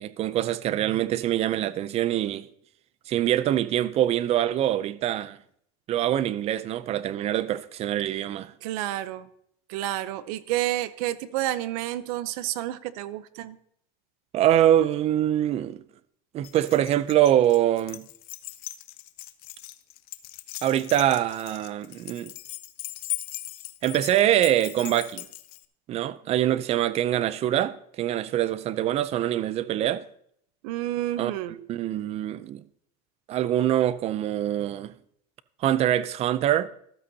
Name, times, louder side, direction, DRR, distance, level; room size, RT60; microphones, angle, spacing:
voice 1, 0.0-2.5 3.1-5.4 5.9-8.5 14.3-15.8 16.3-18.0 20.6-22.3 23.8-25.3 25.9-30.0 31.2-32.6 33.3-34.9 35.6-36.7, right 12 dB, 30° right, 0.5 m, -24 dB
voice 2, 8.6-9.3 9.7-13.6 30.6-31.6, right 14 dB, 70° right, 0.7 m, -30 dB
Keys jangling, 16.4-25.6, left 18 dB, 50° left, 0.7 m, -39 dB
13.5 x 12.5 x 2.8 m
supercardioid pair, 140°, 20 cm